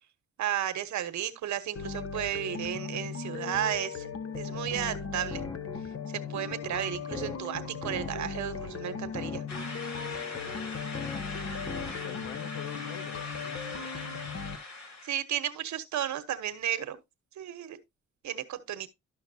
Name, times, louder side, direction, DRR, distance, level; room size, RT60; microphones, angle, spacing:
voice 1, 0.4-4.0 4.3-5.4 6.1-9.4 15.0-17.0 17.4-17.8 18.2-18.9, right 11 dB, 70° right, 1.2 m, -33 dB
sound 1, 1.8-14.6, left 6 dB, 50° left, 1.2 m, -38 dB
sound 2, 4.5-12.2, left 3 dB, 10° left, 0.5 m, -44 dB
sound 3, 9.5-15.2, left 3 dB, 65° left, 2.6 m, -41 dB
voice 2, 12.0-13.9, left 9 dB, 80° left, 1.1 m, -45 dB
12.5 x 5.8 x 2.8 m
cardioid pair, 90°, 30 cm